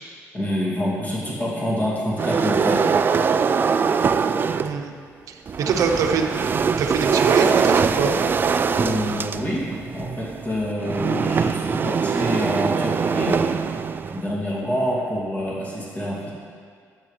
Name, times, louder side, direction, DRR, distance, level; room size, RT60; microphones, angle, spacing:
voice 1, 0.3-3.0 5.6-5.8 8.7-13.4 14.1-16.3, equal, 30° left, -6 dB, 2.5 m, -27 dB
sound 1, 2.2-4.8 5.5-14.3, right 5 dB, 35° right, 0.3 m, -22 dB
voice 2, 4.6-4.9 5.3-6.3 6.8-8.1, right 6 dB, 75° right, 4 dB, 0.8 m, -23 dB
12.5 x 8.3 x 3.3 m, 2.1 s
cardioid pair, 105°, 6 cm